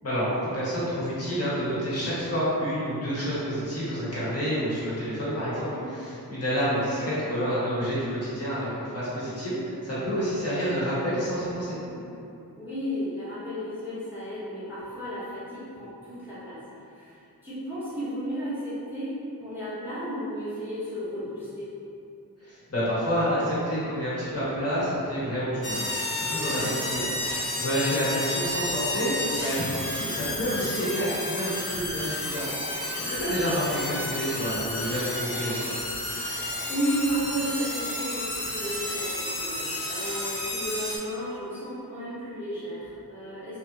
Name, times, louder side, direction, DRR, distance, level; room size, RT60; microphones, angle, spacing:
voice 1, 0.0-11.8 22.4-27.1 27.3-35.8, equal, 40° left, -10 dB, 1.1 m, -29 dB
voice 2, 5.5-5.9 6.7-6.9 11.6-12.2 12.6-16.6 16.9-21.7 26.3-26.7 32.4-32.8 36.7-43.6, equal, 5° right, -12 dB, 0.6 m, -34 dB
sound 1, 25.6-41.0, left 1 dB, 90° left, 0.7 m, -31 dB
3.2 x 2.8 x 2.6 m, 2.6 s
wide cardioid pair, 155°, 37 cm